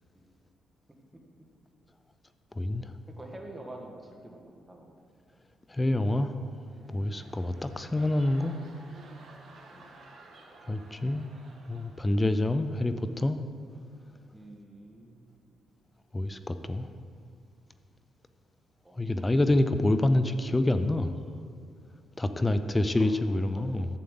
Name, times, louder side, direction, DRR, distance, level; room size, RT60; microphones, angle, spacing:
voice 1, 2.5-2.9 5.7-6.3 6.9-8.6 10.7-11.3 11.7-13.4 16.1-16.9 19.0-21.1 22.2-23.9, left 1 dB, 15° left, 10 dB, 0.5 m, -27 dB
voice 2, 3.2-4.9 7.2-7.5 9.7-9.9 14.3-15.6 18.8-19.0 23.0-23.1 23.5-23.6, right 1 dB, 10° right, 0 dB, 1.6 m, -47 dB
sound 1, 6.6-12.6 12.9-13.2, right 3 dB, 55° right, 1.7 m, -54 dB
11.5 x 8.2 x 3.8 m, 2.3 s
cardioid pair, 90°, 0 cm